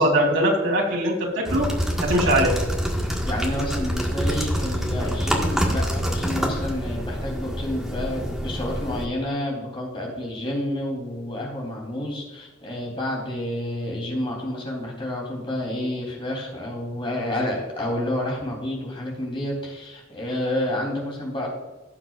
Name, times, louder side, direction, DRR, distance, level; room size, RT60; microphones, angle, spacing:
voice 1, 0.0-1.7 2.0-2.5, right 1 dB, 80° right, 0 dB, 3.3 m, -21 dB
sound 1, 1.4-9.0, equal, ahead, 1.6 m, -26 dB
voice 2, 3.2-21.5, left 1 dB, 25° left, -1 dB, 3.3 m, -29 dB
17.0 x 7.3 x 2.5 m, 1.1 s
head